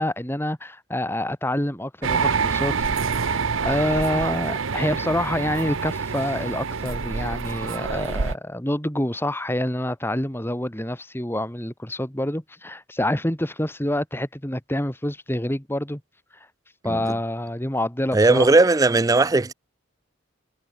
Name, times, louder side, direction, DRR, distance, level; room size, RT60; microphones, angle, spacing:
voice 1, 0.0-16.0 16.8-18.5, left 1 dB, 10° left, 1.8 m, -27 dB
sound 1, 2.0-8.3, right 5 dB, 75° right, 0.8 m, -26 dB
voice 2, 18.1-19.5, right 2 dB, 15° right, 0.4 m, -17 dB
head